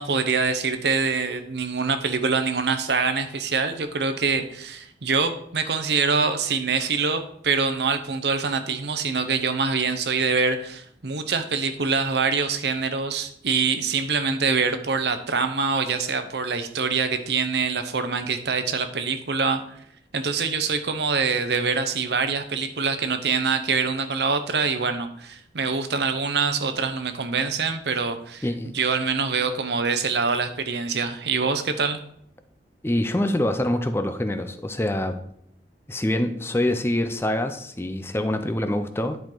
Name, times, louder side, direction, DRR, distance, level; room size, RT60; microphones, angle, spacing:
voice 1, 0.0-19.8 20.1-28.4 28.7-32.0, right 5 dB, 75° right, 9 dB, 0.8 m, -25 dB
voice 2, 28.4-28.7 32.8-35.2 35.9-39.2, left 1 dB, 15° left, 9 dB, 0.5 m, -25 dB
10.5 x 4.5 x 3.9 m, 0.69 s
head